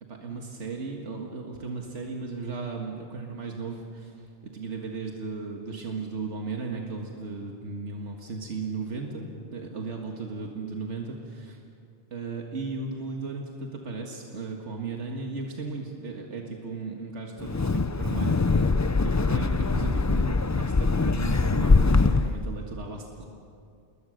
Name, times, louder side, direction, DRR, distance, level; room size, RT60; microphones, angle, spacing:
voice 1, 0.0-11.6 12.1-18.7 19.0-23.3, right 4 dB, 85° right, 1 dB, 2.0 m, -36 dB
Wind, 17.4-22.5, left 3 dB, 30° left, 0.3 m, -23 dB
28.0 x 21.0 x 6.5 m, 2.4 s
omnidirectional pair, 1.2 m